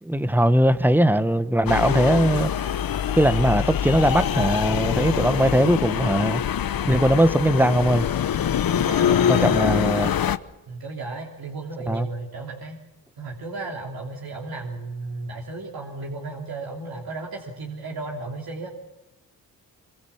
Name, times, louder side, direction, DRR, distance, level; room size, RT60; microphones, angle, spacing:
voice 1, 0.0-2.7 3.2-6.4 6.9-8.1 9.3-10.1 11.9-12.1, right 1 dB, 5° right, 1.1 m, -20 dB
sound 1, 1.7-10.4, left 9 dB, 60° left, 1.0 m, -24 dB
voice 2, 5.1-5.5 8.7-9.8 10.7-12.8 13.2-18.7, right 3 dB, 65° right, 3.3 m, -34 dB
24.5 x 23.0 x 7.2 m
cardioid pair, 85°, 38 cm